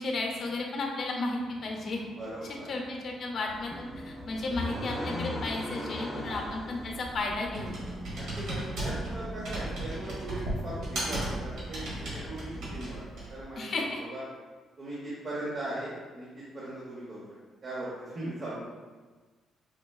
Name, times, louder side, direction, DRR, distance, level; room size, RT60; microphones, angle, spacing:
voice 1, 0.0-2.0 2.7-7.7 13.6-14.0, left 2 dB, 55° left, 1 dB, 0.6 m, -33 dB
sound 1, 1.5-12.9, right 1 dB, 5° right, 0.4 m, -47 dB
voice 2, 2.2-2.7 6.2-6.4 8.1-14.2 14.8-16.3 16.5-17.2 17.6-18.6, right 1 dB, 45° right, -8 dB, 0.8 m, -39 dB
sound 2, 3.5-12.5, left 1 dB, 20° left, 0.8 m, -41 dB
Computer keyboard, 6.5-13.4, right 1 dB, 75° right, 1.3 m, -37 dB
4.8 x 2.2 x 2.3 m, 1.4 s
cardioid pair, 90°, 0 cm